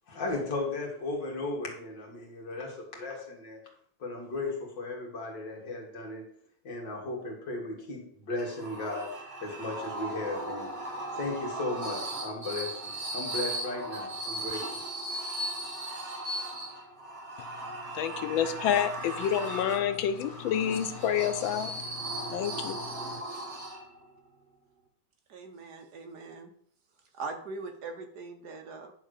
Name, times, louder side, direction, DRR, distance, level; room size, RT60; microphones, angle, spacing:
voice 1, 0.1-3.6 4.0-6.3 6.6-10.7 11.1-14.9, left 2 dB, 65° left, 0 dB, 2.7 m, -36 dB
sound 1, 8.4-24.1, right 2 dB, 40° right, 1.4 m, -37 dB
voice 2, 17.9-23.2, left 9 dB, 85° left, 11 dB, 1.4 m, -29 dB
voice 3, 25.3-26.5 27.1-28.9, right 4 dB, 60° right, 5 dB, 1.3 m, -41 dB
10.0 x 3.6 x 6.5 m, 0.64 s
omnidirectional pair, 2.2 m